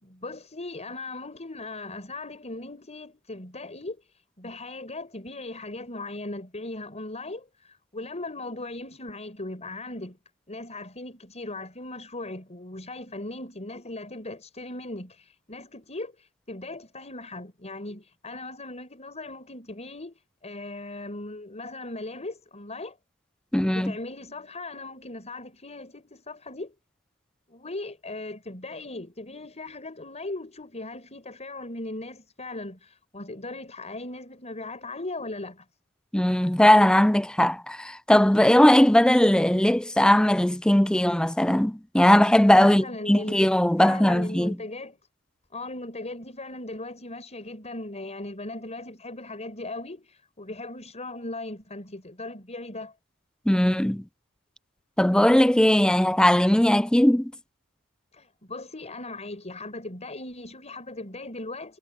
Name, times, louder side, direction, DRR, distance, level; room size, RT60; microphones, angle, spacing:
voice 1, 0.0-4.0 4.4-10.2 10.5-20.1 20.4-23.0 23.7-26.7 27.5-35.6 42.5-43.4 43.8-45.0 45.5-52.9 58.1-61.8, left 2 dB, 30° left, 6.7 m, -38 dB
voice 2, 23.5-23.9 36.1-44.6 53.5-54.0 55.0-57.3, left 1 dB, 5° left, 0.5 m, -19 dB
head